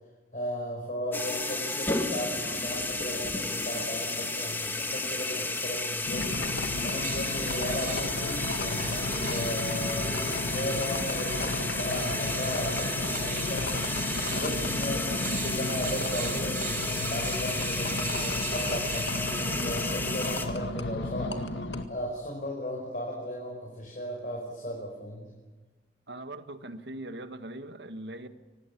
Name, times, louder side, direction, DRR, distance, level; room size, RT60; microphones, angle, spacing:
voice 1, 0.3-13.6 14.2-15.1 15.4-25.3, equal, 45° left, 0 dB, 5.2 m, -36 dB
sound 1, 1.1-20.5, left 2 dB, 10° left, 1.9 m, -32 dB
sound 2, 6.1-21.8, left 2 dB, 80° left, 2.0 m, -34 dB
sound 3, 6.8-19.6, right 6 dB, 50° right, 6.0 m, -41 dB
voice 2, 26.1-28.3, right 1 dB, 75° right, 10 dB, 1.7 m, -40 dB
25.5 x 19.0 x 8.6 m, 1.2 s
head